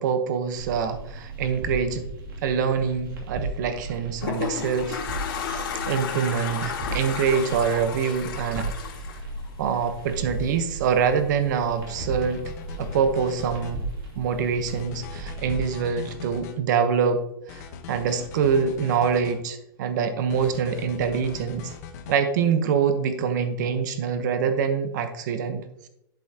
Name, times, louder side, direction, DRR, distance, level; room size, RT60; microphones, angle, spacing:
voice 1, 0.0-2.1 2.4-5.0 5.5-8.7 9.6-12.4 12.8-13.8 14.2-17.6 17.9-21.7 22.1-25.9, right 6 dB, 55° right, 8 dB, 1.0 m, -25 dB
sound 1, 0.5-15.7, right 2 dB, 80° right, 2.6 m, -36 dB
Toilet flush, 3.8-10.2, left 7 dB, 85° left, 2.6 m, -33 dB
sound 2, 11.9-13.7 14.7-16.6 17.5-19.4 20.3-22.2, left 6 dB, 45° left, 1.0 m, -40 dB
11.5 x 5.4 x 2.9 m, 0.82 s
supercardioid pair, 165°, 12 cm